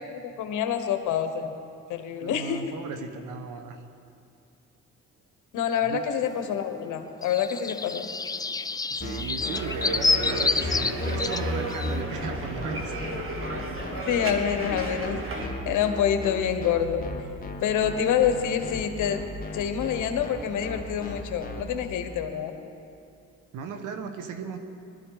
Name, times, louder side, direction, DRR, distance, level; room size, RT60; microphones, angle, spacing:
voice 1, 0.1-1.6 1.9-2.6 5.5-8.1 14.1-15.2 15.6-17.0 17.6-19.2 19.5-22.5, left 8 dB, 80° left, 7 dB, 1.3 m, -27 dB
voice 2, 2.2-3.8 5.8-6.0 8.9-12.9 23.5-24.6, right 5 dB, 90° right, 7 dB, 1.2 m, -36 dB
sound 1, 6.4-6.5 6.8-12.0, left 3 dB, 15° left, 0.3 m, -28 dB
sound 2, 9.0-21.6, left 3 dB, 30° left, 1.7 m, -35 dB
sound 3, 9.5-15.5, right 2 dB, 45° right, 2.1 m, -34 dB
20.5 x 12.5 x 4.9 m, 2.6 s
cardioid pair, 90°, 30 cm